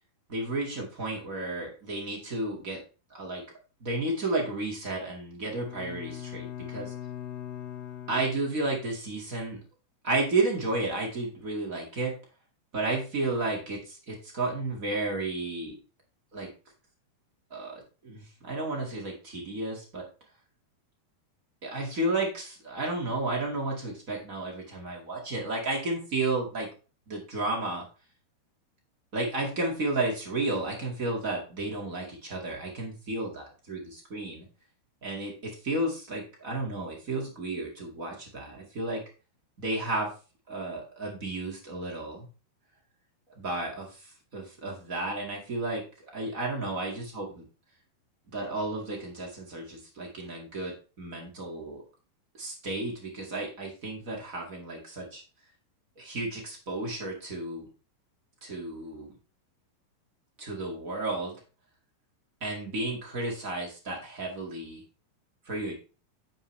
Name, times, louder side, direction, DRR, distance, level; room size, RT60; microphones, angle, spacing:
voice 1, 0.3-2.8 3.1-3.4 3.8-6.9 8.1-9.6 10.0-12.1 12.7-15.7 16.3-16.5 17.5-20.1 21.6-26.7 27.1-27.8 29.1-34.5 35.0-39.0 39.6-40.1 40.5-42.3 43.3-45.8 46.1-47.4 48.3-51.8 52.4-55.2 55.9-57.7 58.4-59.1 60.4-61.4 62.4-64.8 65.4-65.8, right 2 dB, 35° right, -1 dB, 1.4 m, -32 dB
Bowed string instrument, 5.4-9.0, left 11 dB, 65° left, 2.6 m, -41 dB
9.1 x 7.3 x 3.3 m, 0.33 s
omnidirectional pair, 4.9 m